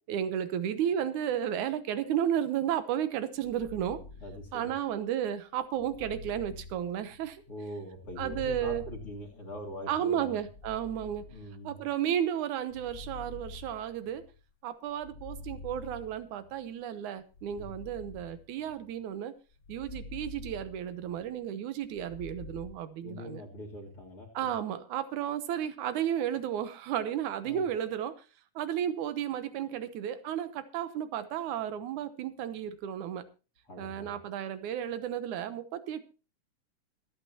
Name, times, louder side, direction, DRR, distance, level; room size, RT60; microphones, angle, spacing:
voice 1, 0.1-4.0 4.5-7.4 8.2-8.8 9.9-11.3 11.6-14.3 14.6-19.3 19.7-23.4 24.4-28.1 28.6-33.3 33.8-36.0, right 10 dB, 75° right, 12 dB, 2.3 m, -33 dB
sound 1, 3.4-4.9 5.7-7.4 8.0-9.7 10.4-11.9 12.6-14.4 14.9-16.5 17.3-19.0 19.5-21.3 21.8-22.7, left 3 dB, 65° left, 0.9 m, -47 dB
voice 2, 4.2-4.7 7.5-10.4 11.3-11.8 17.6-17.7 23.0-24.5 27.4-27.6 33.7-34.2, left 1 dB, 45° left, -3 dB, 2.8 m, -43 dB
24.5 x 8.8 x 2.9 m, 0.32 s
omnidirectional pair, 3.6 m